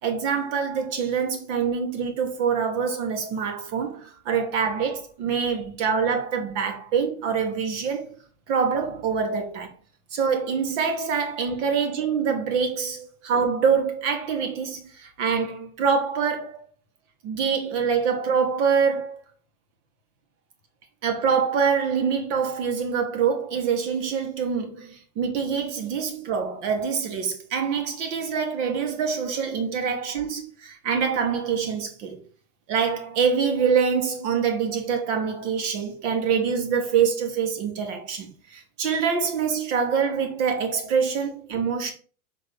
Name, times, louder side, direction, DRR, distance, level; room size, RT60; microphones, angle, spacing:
voice 1, 0.0-8.1 8.5-9.7 10.1-16.6 17.2-19.2 21.0-32.2 32.7-41.9, right 6 dB, 55° right, 2.0 m, -25 dB
5.3 x 3.8 x 4.9 m
hypercardioid pair, 105°, 44 cm